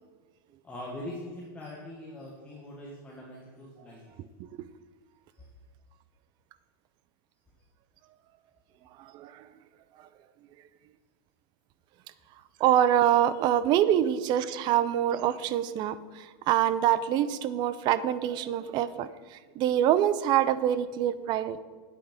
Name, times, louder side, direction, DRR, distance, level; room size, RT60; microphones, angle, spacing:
voice 1, 0.6-4.1, left 1 dB, 10° left, -5 dB, 1.5 m, -42 dB
voice 2, 9.0-9.5 12.6-21.6, right 11 dB, 35° right, 16 dB, 0.5 m, -25 dB
8.9 x 8.5 x 5.2 m, 1.5 s
supercardioid pair, 145°, 14 cm